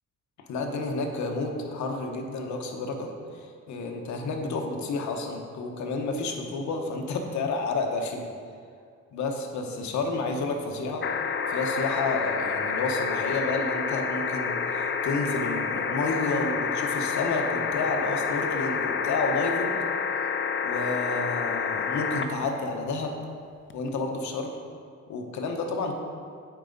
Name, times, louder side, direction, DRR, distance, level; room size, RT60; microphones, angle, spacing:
voice 1, 0.5-8.3 9.1-11.1 11.5-19.8 20.6-23.2 23.7-24.5 25.1-25.9, left 3 dB, 70° left, 3 dB, 1.0 m, -30 dB
sound 1, 11.0-22.3 23.7-23.8, left 5 dB, 40° left, 0.6 m, -28 dB
8.7 x 4.8 x 4.0 m, 2.2 s
cardioid pair, 90°, 30 cm